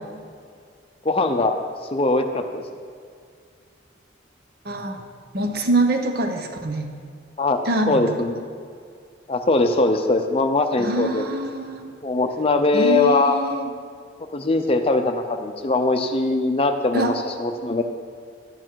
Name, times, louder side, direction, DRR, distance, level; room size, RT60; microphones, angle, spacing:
voice 1, 1.0-1.6 1.9-2.6 7.4-7.6 7.9-8.4 9.3-11.3 12.0-13.4 14.3-17.8, left 2 dB, 30° left, 6 dB, 0.6 m, -21 dB
voice 2, 4.6-5.0 5.3-6.9 7.6-8.1 10.8-11.9 12.7-13.7 16.9-17.1, right 2 dB, 55° right, 4 dB, 1.0 m, -24 dB
11.5 x 8.7 x 4.6 m, 2.2 s
head